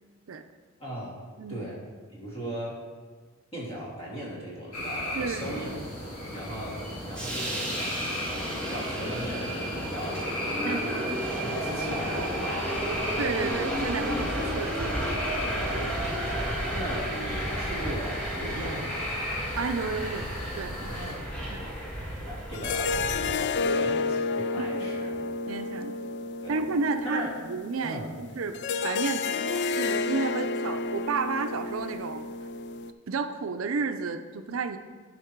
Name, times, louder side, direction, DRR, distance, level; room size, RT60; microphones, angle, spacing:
voice 1, 0.8-1.2 1.5-1.8 2.1-2.8 3.5-5.8 6.3-6.8 7.1-10.2 10.6-11.1 11.4-12.7 15.4-16.5 16.7-19.0 20.7-21.4 22.2-25.2 26.4-26.6 27.0-27.3 27.8-28.1, equal, 30° left, -5 dB, 2.6 m, -38 dB
sound 1, 4.7-21.1, left 1 dB, 90° left, 2.5 m, -38 dB
voice 2, 5.1-5.5 10.6-10.8 13.2-15.2 16.8-16.9 19.6-20.3 20.6-20.9 21.5-21.7 24.6-24.9 25.5-26.0 26.5-27.2 27.5-28.6 28.8-32.2 33.1-34.8, right 4 dB, 70° right, 8 dB, 0.5 m, -32 dB
Subway metro underground, 5.4-23.3, equal, 5° left, 1.7 m, -32 dB
sound 2, 19.5-20.2 21.1-21.2 22.5-32.9, left 4 dB, 55° left, 0.4 m, -31 dB
11.0 x 5.1 x 4.6 m, 1.4 s
head